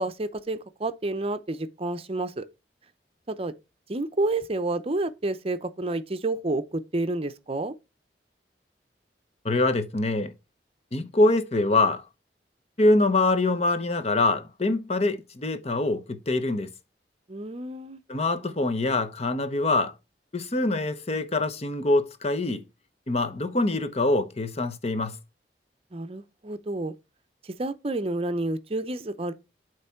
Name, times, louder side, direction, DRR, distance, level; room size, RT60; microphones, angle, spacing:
voice 1, 0.0-2.4 3.3-3.5 3.9-7.7 17.3-18.0 25.9-26.9 27.4-29.3, right 2 dB, 35° right, 0.7 m, -29 dB
voice 2, 9.4-10.3 10.9-12.0 12.8-16.7 18.1-19.9 20.3-22.6 23.1-25.2, left 2 dB, 35° left, 0.8 m, -24 dB
8.1 x 3.2 x 5.7 m
head